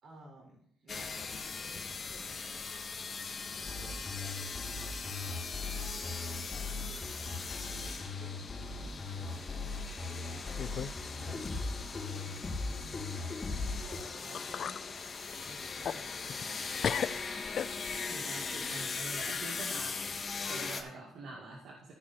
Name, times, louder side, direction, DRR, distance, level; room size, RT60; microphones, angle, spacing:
voice 1, 0.0-2.9 3.5-4.4 6.4-7.4 7.7-9.7 10.1-11.6 12.1-13.2 13.8-14.8 15.4-17.5, right 1 dB, 55° right, -1 dB, 4.8 m, -55 dB
sound 1, 0.9-20.8, left 4 dB, 40° left, 1.3 m, -40 dB
sound 2, 3.6-14.0, left 3 dB, 25° left, 4.0 m, -39 dB
sound 3, 6.3-7.1 7.3-7.8 8.3-8.4 9.2-9.3 10.1-10.2 10.6-11.0 11.3-11.4 13.9-14.0 14.3-14.8 15.3-16.6 16.8-18.1, left 8 dB, 60° left, 0.4 m, -38 dB
voice 2, 18.1-20.0 20.4-21.9, right 3 dB, 75° right, -2 dB, 1.9 m, -45 dB
15.0 x 5.3 x 4.3 m, 0.68 s
cardioid pair, 90°, 0 cm